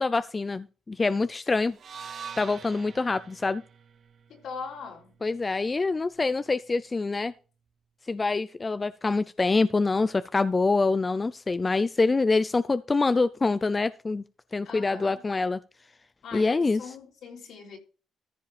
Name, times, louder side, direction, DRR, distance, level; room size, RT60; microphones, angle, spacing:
voice 1, 0.0-1.8 2.4-3.6 5.2-7.3 8.1-14.2 14.5-15.6 16.3-16.8, left 3 dB, 25° left, 0.4 m, -25 dB
sound 1, 1.7-5.9, right 7 dB, 55° right, 0.7 m, -45 dB
voice 2, 4.3-5.1 14.6-15.2 16.2-17.8, left 5 dB, 70° left, 3.6 m, -41 dB
14.5 x 5.0 x 5.1 m
cardioid pair, 90°, 0 cm